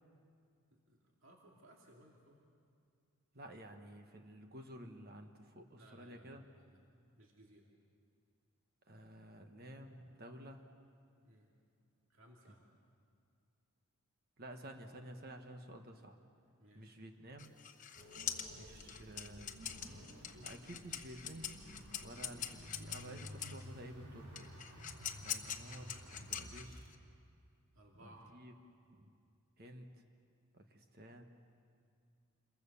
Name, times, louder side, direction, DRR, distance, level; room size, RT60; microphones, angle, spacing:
voice 1, 0.7-2.4 5.8-6.8 7.2-7.7 11.2-11.5 12.1-12.6 16.6-17.0 18.5-19.2 20.2-20.9 21.9-22.1 27.7-28.3, right 1 dB, 65° right, -1 dB, 2.6 m, -62 dB
voice 2, 3.3-6.4 8.9-10.6 14.4-16.2 16.7-17.5 18.5-19.5 20.4-21.5 22.0-24.5 25.2-26.9 28.0-28.5 29.0-29.1 29.6-29.9 30.5-31.2, right 1 dB, 45° right, 5 dB, 1.4 m, -52 dB
sound 1, 17.4-23.6 24.4-27.0, left 9 dB, 35° left, 1.2 m, -43 dB
sound 2, 17.9-26.8, equal, 80° right, 4.1 m, -53 dB
28.0 x 22.5 x 7.0 m, 2.3 s
head